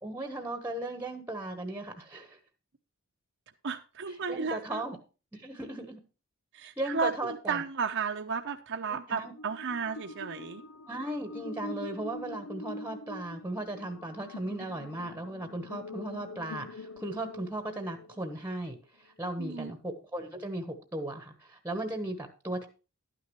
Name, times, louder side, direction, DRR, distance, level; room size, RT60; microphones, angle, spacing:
voice 1, 0.0-2.4 4.1-5.0 5.3-6.0 6.8-7.6 8.9-9.3 10.9-22.7, right 1 dB, 10° right, 6 dB, 1.1 m, -37 dB
voice 2, 3.6-4.8 6.5-10.6 19.4-19.7, right 5 dB, 55° right, 5 dB, 0.8 m, -33 dB
sound 1, 9.2-18.6, left 2 dB, 80° left, 0.5 m, -44 dB
12.0 x 9.6 x 3.1 m, 0.33 s
head